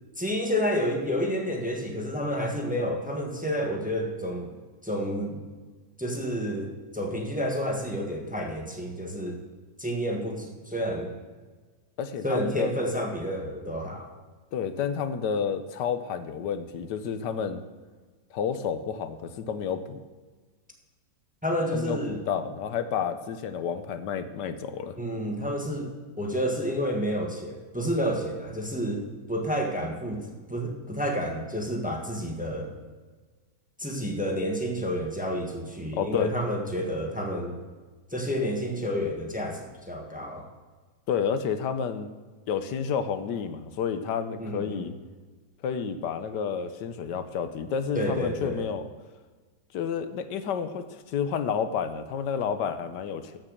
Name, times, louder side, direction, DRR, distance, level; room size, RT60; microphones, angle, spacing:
voice 1, 0.2-4.5 4.8-5.4 6.0-9.4 9.8-11.1 12.2-14.1 21.4-22.2 25.0-25.9 26.2-29.0 29.3-32.7 33.8-37.6 38.1-40.5 44.4-44.9 47.9-48.6, equal, 5° right, 1 dB, 1.3 m, -30 dB
voice 2, 12.0-12.9 14.5-17.6 18.3-20.0 21.7-25.0 35.9-36.3 41.1-42.1 42.5-44.9 45.6-48.8 49.7-53.4, left 7 dB, 85° left, 10 dB, 1.4 m, -30 dB
14.0 x 6.1 x 6.5 m, 1.4 s
omnidirectional pair, 1.8 m